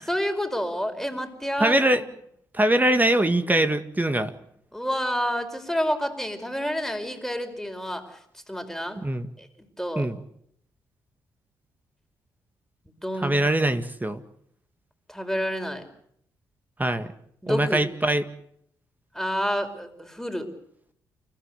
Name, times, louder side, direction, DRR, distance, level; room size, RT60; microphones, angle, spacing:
voice 1, 0.1-2.0 4.7-9.0 9.4-10.1 12.8-13.3 15.1-15.8 17.4-17.8 19.1-20.5, equal, 5° left, 6 dB, 4.9 m, -29 dB
voice 2, 1.6-2.0 2.5-4.3 9.0-9.3 10.0-10.2 13.2-14.2 16.8-17.1 17.5-18.2, right 1 dB, 15° right, 9 dB, 1.9 m, -22 dB
29.5 x 15.0 x 8.2 m, 0.70 s
hypercardioid pair, 40°, 10 cm